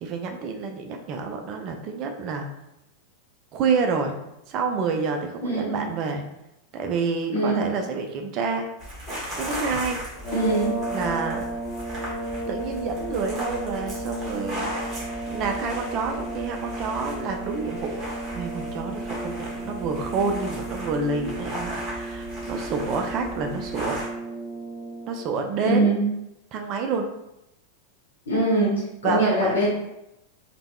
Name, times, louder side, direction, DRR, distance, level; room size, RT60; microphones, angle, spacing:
voice 1, 0.0-2.5 3.5-4.2 4.5-6.2 6.7-8.7 9.4-10.0 10.9-11.5 12.5-14.7 15.3-24.0 25.1-25.9 26.5-27.1 29.0-29.6, right 4 dB, 40° right, 3 dB, 0.4 m, -28 dB
voice 2, 5.4-5.8 7.3-7.7 10.3-10.8 25.6-26.0 28.3-29.7, right 1 dB, 65° left, -5 dB, 0.7 m, -23 dB
sound 1, 8.8-24.1, equal, 20° right, 1.1 m, -37 dB
sound 2, 10.2-25.3, right 2 dB, 25° left, 0.8 m, -34 dB
3.4 x 2.0 x 2.3 m, 0.86 s
figure-of-eight pair, 90°, 0 cm